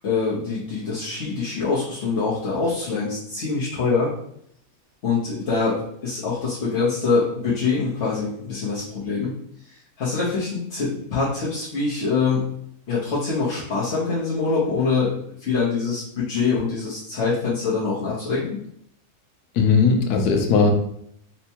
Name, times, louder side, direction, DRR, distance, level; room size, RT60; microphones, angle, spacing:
voice 1, 0.0-4.1 5.0-9.3 9.6-12.4 12.9-18.6, left 4 dB, 55° left, -9 dB, 1.0 m, -24 dB
voice 2, 19.6-20.7, left 5 dB, 90° left, 4 dB, 1.1 m, -18 dB
4.4 x 2.1 x 2.8 m, 0.70 s
omnidirectional pair, 1.6 m